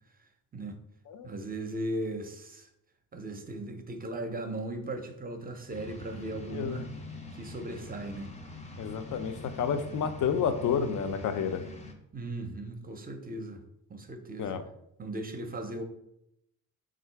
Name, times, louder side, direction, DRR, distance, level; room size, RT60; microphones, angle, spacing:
voice 1, 1.2-2.7 3.1-6.8 7.4-8.3 12.1-13.6 13.9-14.6 15.0-15.8, right 1 dB, 25° right, 6 dB, 0.5 m, -37 dB
sound 1, 5.7-11.9, left 2 dB, 20° left, 0.6 m, -44 dB
voice 2, 6.5-6.8 8.8-11.6 14.4-14.6, left 7 dB, 60° left, 9 dB, 0.5 m, -30 dB
3.6 x 2.4 x 4.4 m, 0.79 s
cardioid pair, 100°, 35 cm